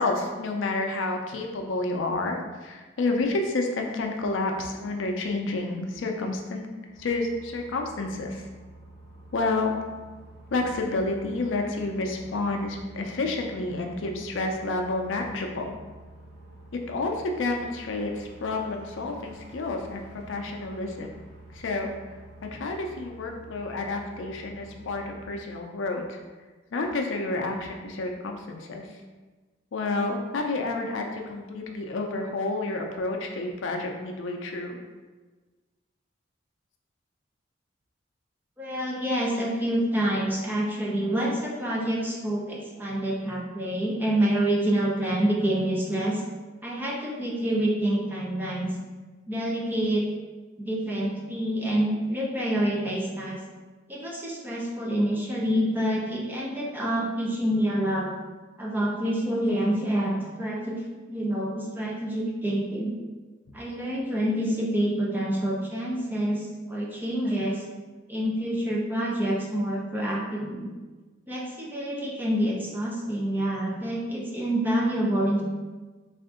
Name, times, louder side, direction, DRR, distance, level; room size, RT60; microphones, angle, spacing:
voice 1, 0.0-6.7 7.0-8.5 9.3-9.7 10.5-15.8 16.7-21.1 21.5-21.9 22.5-26.2 26.7-28.9 29.7-34.8, left 2 dB, 75° left, 3 dB, 0.5 m, -29 dB
sound 1, 6.9-25.2, right 1 dB, 60° right, 0.7 m, -48 dB
voice 2, 38.6-46.2 46.6-48.7 49.3-50.0 50.6-53.4 53.9-58.1 58.6-62.9 63.5-67.6 68.1-70.7 71.3-75.4, right 1 dB, 10° right, -4 dB, 0.6 m, -27 dB
3.5 x 2.5 x 3.6 m, 1.3 s
head